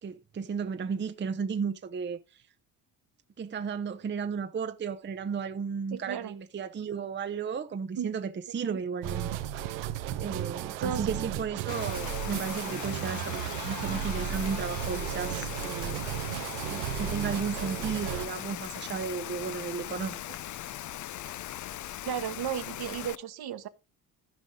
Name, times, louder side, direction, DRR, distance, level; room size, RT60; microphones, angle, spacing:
voice 1, 0.0-2.4 3.4-9.3 10.2-16.0 16.7-20.4, right 6 dB, 25° right, 0.7 m, -34 dB
voice 2, 5.9-6.3 8.0-8.1 8.6-8.8 10.8-11.3 22.0-23.7, right 8 dB, 55° right, 1.2 m, -34 dB
sound 1, 9.0-18.3, right 10 dB, 80° right, 0.9 m, -34 dB
Rain, 11.7-23.1, left 13 dB, 40° left, 0.5 m, -39 dB
14.5 x 5.2 x 3.7 m
hypercardioid pair, 55°, 46 cm